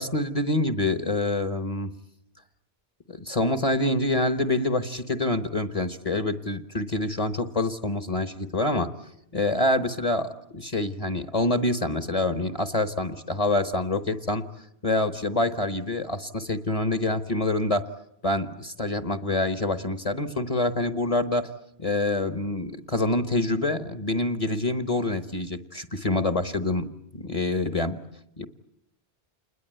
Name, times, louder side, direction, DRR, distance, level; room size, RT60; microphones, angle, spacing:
voice 1, 0.0-1.9 3.1-8.9 9.3-14.4 14.8-17.9 18.2-21.5 21.8-28.0 28.4-28.5, left 2 dB, 35° left, 10 dB, 1.2 m, -26 dB
28.5 x 21.0 x 9.1 m, 0.77 s
omnidirectional pair, 1.0 m